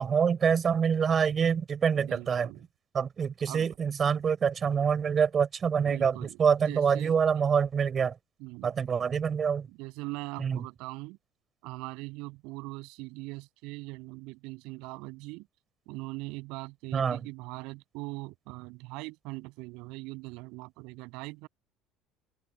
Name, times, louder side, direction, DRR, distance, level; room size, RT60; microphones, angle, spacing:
voice 1, 0.0-2.5 2.9-8.1 8.6-9.7 10.4-10.6 16.9-17.2, right 7 dB, 30° right, 4.2 m, -26 dB
voice 2, 1.9-2.6 3.5-3.8 5.9-6.4 6.6-7.1 8.4-8.7 9.7-11.2 11.6-15.5 15.9-21.5, right 24 dB, 75° right, 7.3 m, -41 dB
open air
cardioid pair, 145°, 0 cm